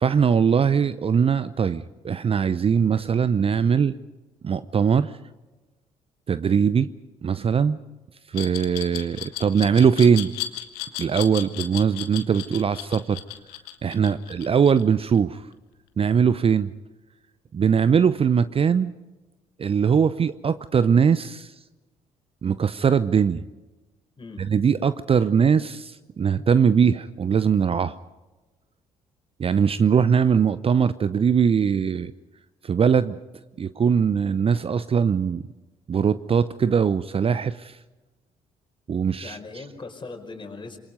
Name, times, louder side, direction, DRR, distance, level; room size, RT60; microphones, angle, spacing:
voice 1, 0.0-3.9 4.4-5.2 6.3-6.9 7.2-7.8 8.3-10.3 11.0-13.2 13.8-15.5 16.0-16.7 17.5-18.9 19.6-21.5 22.4-23.4 24.4-28.0 29.4-32.1 32.6-33.2 33.6-35.4 35.9-37.8 38.9-39.4, right 6 dB, 35° right, 16 dB, 0.7 m, -21 dB
Glass, 8.3-15.2, left 14 dB, 70° left, 1.5 m, -34 dB
voice 2, 39.2-40.8, left 3 dB, 25° left, 5 dB, 4.9 m, -39 dB
27.0 x 23.0 x 5.4 m, 1.1 s
figure-of-eight pair, 45°, 17 cm